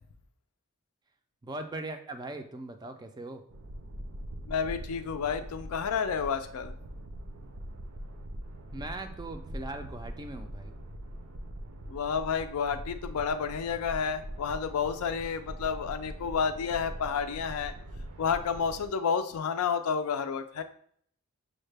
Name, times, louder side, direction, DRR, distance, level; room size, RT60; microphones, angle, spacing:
voice 1, 1.4-3.4 8.7-10.7, right 2 dB, 20° right, 6 dB, 0.3 m, -40 dB
sound 1, 3.5-18.9, right 1 dB, 80° right, 0.5 m, -42 dB
voice 2, 4.5-6.7 11.9-17.7 18.2-20.6, left 6 dB, 75° left, 9 dB, 0.4 m, -30 dB
6.3 x 2.1 x 3.3 m, 0.63 s
head